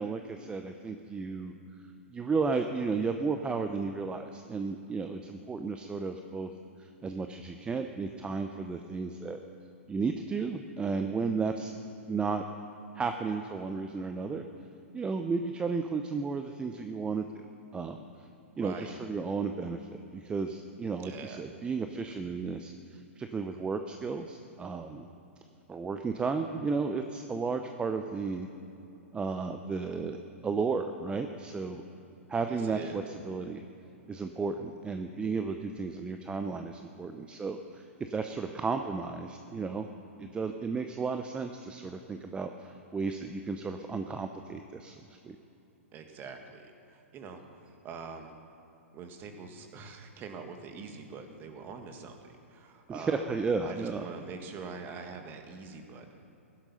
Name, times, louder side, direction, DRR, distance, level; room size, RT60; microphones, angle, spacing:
voice 1, 0.0-1.5 2.1-6.5 6.8-9.4 9.9-11.7 12.1-12.4 12.9-14.4 14.9-17.4 17.7-18.0 18.6-25.1 25.7-28.5 29.1-30.2 30.4-31.8 32.3-33.6 34.1-39.9 40.2-45.0 45.2-45.4 52.9-54.1, right 4 dB, 15° right, 6 dB, 0.7 m, -33 dB
voice 2, 18.6-19.0 21.0-21.4 32.5-33.0 45.9-48.3 48.9-53.3 53.6-56.2, right 5 dB, 30° right, 5 dB, 1.7 m, -44 dB
16.0 x 11.5 x 5.6 m, 2.9 s
figure-of-eight pair, 115°, 7 cm